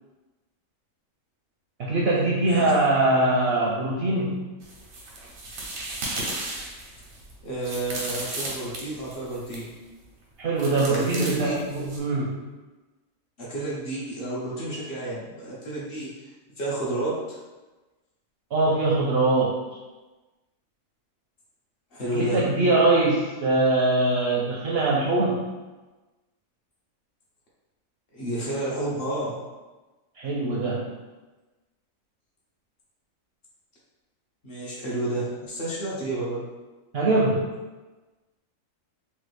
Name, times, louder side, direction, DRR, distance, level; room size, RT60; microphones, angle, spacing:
voice 1, 1.8-4.5 10.4-12.4 18.5-19.6 22.1-25.5 30.2-30.9 36.9-37.5, right 2 dB, 65° right, -5 dB, 0.6 m, -22 dB
sound 1, 4.6-9.7 10.6-12.0, right 2 dB, 90° right, 1.2 m, -35 dB
voice 2, 7.4-9.7 10.9-11.5 13.4-16.1 16.6-17.4 21.9-22.4 28.1-29.4 34.4-36.4, right 1 dB, 50° left, -7 dB, 0.8 m, -30 dB
3.1 x 2.3 x 3.2 m, 1.2 s
omnidirectional pair, 1.4 m